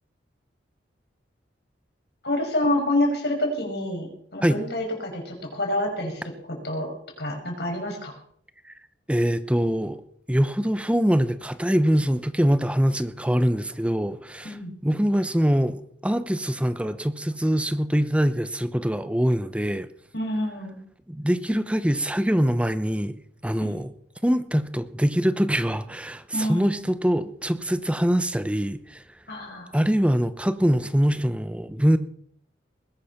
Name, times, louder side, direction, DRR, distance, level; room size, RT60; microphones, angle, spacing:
voice 1, 2.2-4.1 4.3-6.2 6.6-6.9 7.2-8.1 14.4-14.7 20.1-20.8 23.6-23.8 26.3-26.8 29.3-29.7, left 1 dB, 60° left, 2 dB, 5.9 m, -27 dB
voice 2, 9.1-10.0 10.3-14.6 14.8-19.9 21.1-23.2 23.4-23.9 24.2-29.0 29.7-32.0, equal, 5° right, 12 dB, 0.8 m, -23 dB
20.5 x 11.0 x 5.9 m, 0.65 s
head